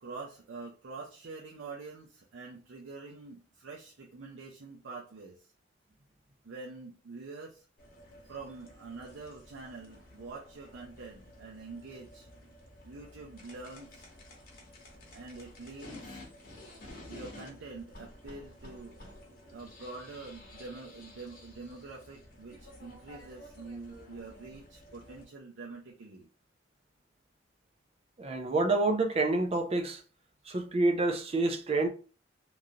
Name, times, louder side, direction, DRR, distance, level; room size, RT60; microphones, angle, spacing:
voice 1, 0.0-5.5 6.4-7.7 8.3-12.3 12.8-14.0 15.1-16.2 17.1-19.0 19.5-26.3, right 3 dB, 85° right, 0.5 m, -46 dB
sound 1, 7.8-25.2, left 1 dB, 50° left, 0.9 m, -52 dB
voice 2, 28.2-30.0 30.5-31.9, right 2 dB, 30° right, 0.4 m, -28 dB
3.0 x 2.5 x 2.7 m
head